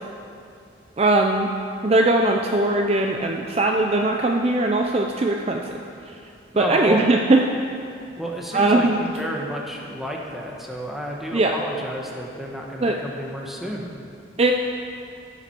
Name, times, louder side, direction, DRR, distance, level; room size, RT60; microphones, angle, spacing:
voice 1, 1.0-1.5 1.8-5.7 6.6-7.4 8.5-9.0 11.3-11.6 12.8-13.0 14.4-14.5, right 2 dB, 30° right, 2 dB, 0.5 m, -20 dB
voice 2, 6.5-7.0 8.2-13.9, equal, ahead, -2 dB, 1.2 m, -31 dB
15.0 x 7.3 x 4.5 m, 2.5 s
head